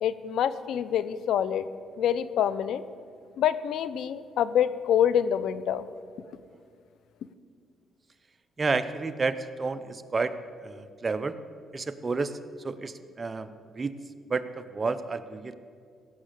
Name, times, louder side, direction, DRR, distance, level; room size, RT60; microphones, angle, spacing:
voice 1, 0.0-1.6 2.0-2.8 3.4-5.9, left 9 dB, 75° left, 15 dB, 0.5 m, -26 dB
voice 2, 8.6-10.3 10.6-11.3 11.7-12.4 12.6-13.5 13.7-13.9 14.3-15.5, right 4 dB, 30° right, 12 dB, 0.7 m, -30 dB
17.0 x 6.3 x 7.4 m, 2.2 s
cardioid pair, 90°, 0 cm